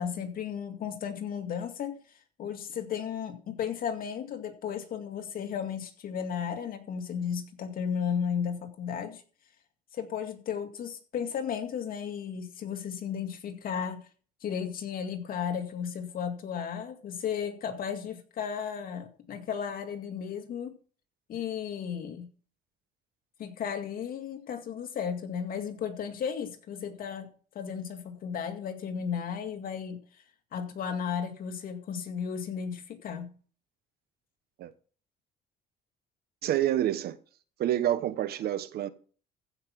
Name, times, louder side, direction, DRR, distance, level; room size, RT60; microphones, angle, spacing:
voice 1, 0.0-2.0 2.4-9.2 9.9-14.0 14.4-20.7 21.3-22.3 23.4-27.3 27.5-30.0 30.5-33.3, left 7 dB, 55° left, 2.3 m, -34 dB
voice 2, 36.4-37.2 37.6-38.9, right 12 dB, 65° right, 1.1 m, -28 dB
15.0 x 5.8 x 6.1 m
cardioid pair, 110°, 17 cm